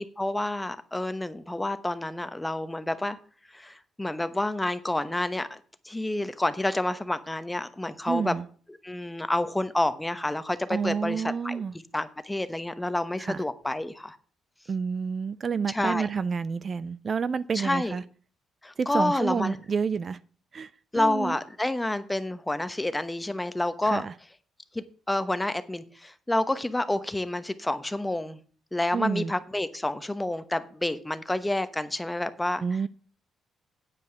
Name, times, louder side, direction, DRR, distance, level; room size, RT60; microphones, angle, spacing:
voice 1, 0.0-3.2 3.5-5.6 5.8-8.3 8.8-11.6 11.9-14.2 15.7-16.1 17.5-18.0 18.6-19.6 20.9-24.1 24.7-28.4 28.7-32.6, left 1 dB, 10° left, 0.9 m, -29 dB
voice 2, 8.1-8.4 10.7-11.7 13.3-13.4 14.7-18.0 18.8-20.2 20.5-20.7 21.0-21.4 23.8-24.1 28.9-29.3 32.6-32.9, right 6 dB, 45° right, 0.4 m, -29 dB
9.2 x 5.4 x 7.8 m
cardioid pair, 90°, 0 cm